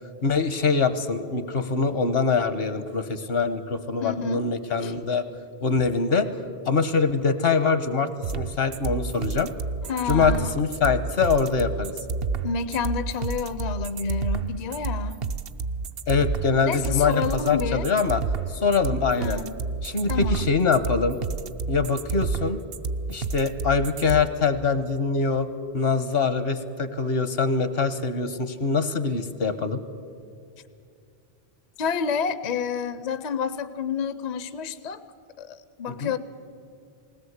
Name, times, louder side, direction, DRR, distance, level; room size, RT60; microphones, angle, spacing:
voice 1, 0.2-5.2 5.6-6.3 6.6-9.5 10.1-11.9 16.1-18.2 18.5-19.4 19.8-21.2 21.7-22.6 23.1-25.5 25.7-29.8 36.0-36.1, left 4 dB, 70° left, 11 dB, 1.2 m, -24 dB
voice 2, 4.0-4.4 4.8-4.9 5.7-5.9 9.9-10.5 12.4-15.2 16.6-17.8 19.1-19.5 20.1-20.5 31.8-35.0 35.4-36.2, left 6 dB, 50° left, 13 dB, 0.6 m, -29 dB
sound 1, 8.2-24.2, right 4 dB, 70° right, 0.9 m, -29 dB
20.0 x 17.5 x 8.0 m, 2.5 s
omnidirectional pair, 1.0 m